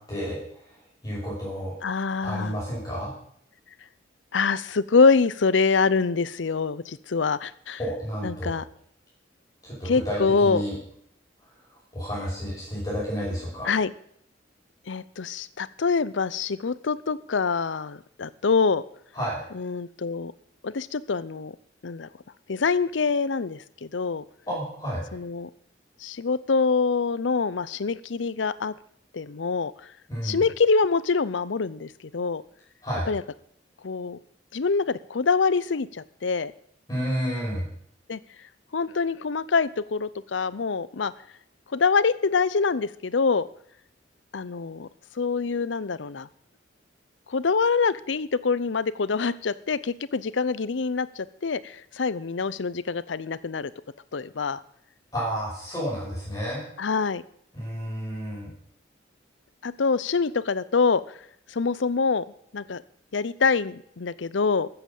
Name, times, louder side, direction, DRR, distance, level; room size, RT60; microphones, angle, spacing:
voice 1, 0.1-0.4 1.0-1.7 2.2-3.1 7.8-8.6 9.6-10.8 11.9-13.7 19.1-19.5 24.5-25.0 30.1-30.4 32.8-33.1 36.9-37.7 55.1-56.6 57.5-58.5, equal, 20° left, -7 dB, 5.7 m, -30 dB
voice 2, 1.8-2.6 4.3-7.8 8.2-8.6 9.8-10.6 13.6-13.9 14.9-18.8 19.5-20.3 20.6-21.5 21.8-22.1 22.5-24.2 25.1-25.5 26.0-28.7 29.1-29.7 30.2-32.4 33.1-33.2 33.8-34.2 34.5-36.5 38.1-38.2 38.7-41.1 41.7-43.5 44.3-44.9 45.2-46.3 47.3-53.7 54.1-54.6 56.8-57.2 59.6-61.0 61.5-62.2 62.5-62.8 63.1-64.7, left 4 dB, 85° left, 18 dB, 0.6 m, -25 dB
13.5 x 7.9 x 7.1 m, 0.67 s
head